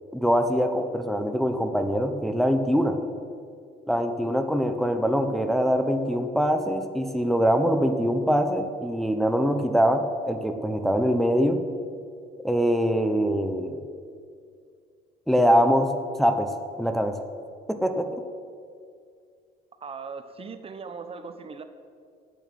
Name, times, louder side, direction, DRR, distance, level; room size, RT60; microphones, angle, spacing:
voice 1, 0.1-3.0 3.9-11.6 12.4-13.8 15.3-15.9 16.2-16.5 16.8-17.2 17.7-18.2, equal, ahead, 6 dB, 1.0 m, -23 dB
voice 2, 19.8-21.6, right 5 dB, 35° right, 9 dB, 1.0 m, -39 dB
11.0 x 8.9 x 9.3 m, 2.3 s
cardioid pair, 110°, 17 cm